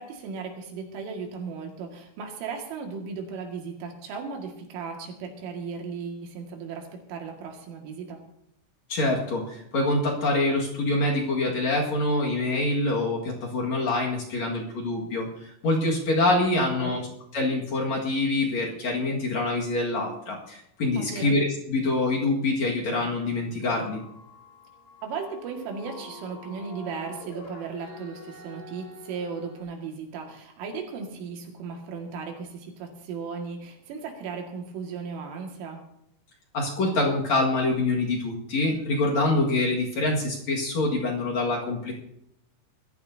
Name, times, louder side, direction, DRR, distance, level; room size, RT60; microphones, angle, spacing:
voice 1, 0.0-8.2 16.7-17.0 21.0-21.3 25.0-35.8, right 5 dB, 75° right, 2 dB, 4.4 m, -36 dB
voice 2, 8.9-15.3 15.6-17.0 17.3-24.0 36.5-41.9, left 2 dB, 55° left, -2 dB, 2.0 m, -25 dB
sound 1, 23.6-29.6, left 1 dB, 85° left, 6.6 m, -46 dB
22.0 x 13.5 x 2.8 m, 0.77 s
omnidirectional pair, 5.9 m